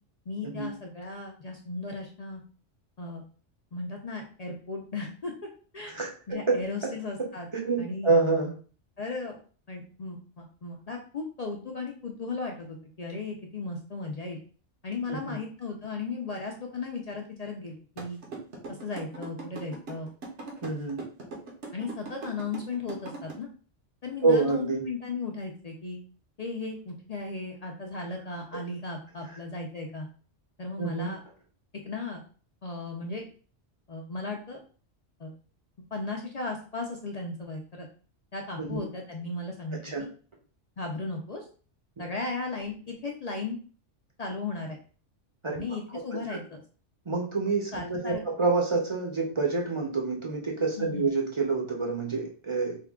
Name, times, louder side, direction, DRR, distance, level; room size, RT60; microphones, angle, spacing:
voice 1, 0.3-2.4 3.0-3.2 3.7-6.0 6.3-7.5 7.8-8.1 9.0-9.4 9.7-14.4 14.8-18.2 18.7-20.1 21.7-23.5 24.0-26.0 26.4-30.1 30.6-31.2 31.8-32.2 32.6-33.2 33.9-34.6 35.2-35.3 35.9-37.9 38.3-40.1 40.8-41.5 42.0-43.6 44.2-44.8 45.6-46.6 47.7-48.2 50.8-51.1, left 3 dB, 55° left, 1 dB, 0.4 m, -36 dB
voice 2, 5.9-6.6 7.5-8.5 15.1-15.4 20.6-21.0 24.2-24.8 30.8-31.1 38.6-38.8 39.8-40.0 42.0-42.1 45.4-45.6 45.9-46.4 47.1-52.8, right 3 dB, 30° right, 0 dB, 0.6 m, -27 dB
sound 1, 18.0-23.3, right 3 dB, 75° right, 1.2 m, -40 dB
3.6 x 2.3 x 3.5 m, 0.40 s
omnidirectional pair, 1.2 m